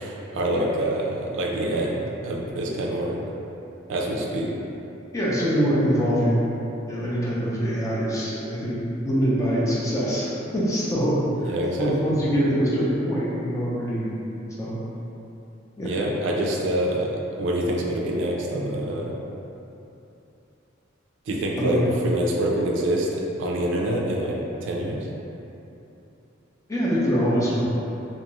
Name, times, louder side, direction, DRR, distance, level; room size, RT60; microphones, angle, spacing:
voice 1, 0.0-3.2 3.9-4.5 11.4-12.1 15.8-19.1 21.3-25.1, right 1 dB, 65° right, -1 dB, 0.4 m, -26 dB
voice 2, 5.1-6.5 6.9-8.7 9.1-14.2 14.6-14.7 15.8-15.9 21.6-21.8 26.7-27.6, equal, 15° left, -7 dB, 0.5 m, -24 dB
2.5 x 2.4 x 3.0 m, 2.9 s
head